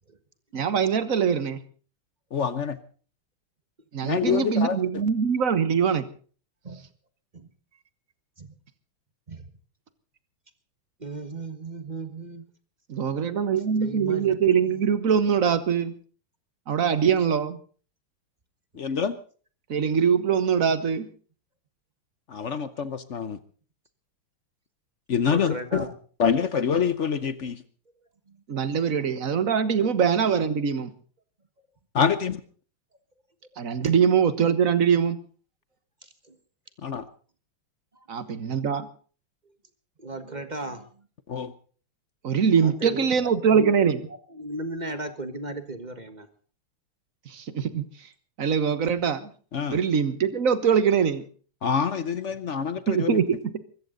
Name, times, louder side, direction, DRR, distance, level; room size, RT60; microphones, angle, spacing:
voice 1, 0.5-1.6 3.9-6.1 12.9-15.9 16.7-17.6 19.7-21.1 28.5-30.9 33.6-35.2 38.1-38.9 42.2-44.0 47.2-48.1 48.4-49.3 49.7-51.2 52.9-53.5, right 7 dB, 45° right, 14 dB, 1.4 m, -23 dB
voice 2, 2.3-2.8 4.0-4.8 18.7-19.2 22.3-23.4 25.1-25.9 26.2-27.6 31.9-32.4 36.8-37.0 41.3-41.5 49.5-49.8 51.6-53.2, left 7 dB, 65° left, 14 dB, 0.7 m, -26 dB
voice 3, 11.0-12.4 13.6-14.9 25.2-25.9 28.3-28.4 29.8-29.9 32.0-32.1 33.8-33.9 36.0-36.4 37.9-38.1 40.0-41.1 42.6-43.1 43.4-43.7 44.3-46.3, right 2 dB, 25° right, 10 dB, 1.4 m, -36 dB
24.0 x 14.0 x 3.9 m, 0.41 s
omnidirectional pair, 2.4 m